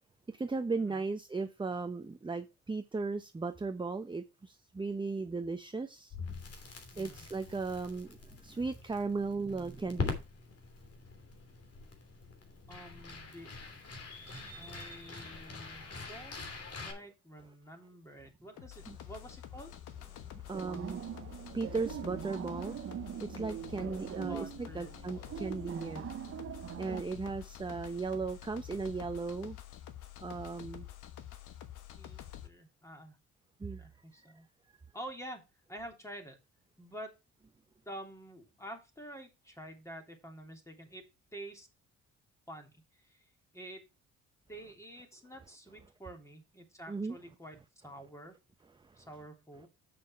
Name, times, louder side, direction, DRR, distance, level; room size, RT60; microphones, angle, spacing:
voice 1, 0.3-6.1 7.0-10.2 14.3-14.7 18.9-19.0 20.2-21.2 21.5-26.1 26.8-29.6 30.2-30.9 33.6-33.8 46.9-47.2 48.8-49.1, right 4 dB, 15° right, 0.8 m, -37 dB
Crackle, 6.1-16.9, left 4 dB, 50° left, 3.1 m, -43 dB
voice 2, 6.9-7.2 12.7-13.6 14.6-16.5 16.8-19.7 24.2-25.4 32.0-33.2 33.8-34.5 34.9-35.4 35.7-36.4 36.8-37.2 37.8-41.0 41.3-41.7 42.5-43.3 43.5-43.8 44.5-47.6 47.8-48.3 49.0-49.7, right 1 dB, 10° left, 3.2 m, -48 dB
sound 1, 18.6-32.5, left 11 dB, 85° left, 1.3 m, -48 dB
sound 2, 20.5-27.0, right 10 dB, 45° right, 0.6 m, -42 dB
7.8 x 6.2 x 4.6 m
cardioid pair, 90°, 30 cm